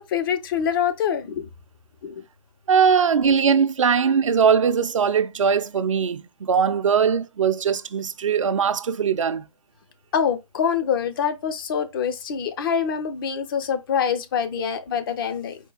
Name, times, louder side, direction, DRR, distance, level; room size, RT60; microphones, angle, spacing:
voice 1, 0.0-1.5 2.0-2.2 10.1-15.6, left 7 dB, 40° left, 0.7 m, -25 dB
voice 2, 2.7-9.5, right 6 dB, 70° right, 0.5 m, -20 dB
4.5 x 2.3 x 3.9 m
figure-of-eight pair, 135°, 17 cm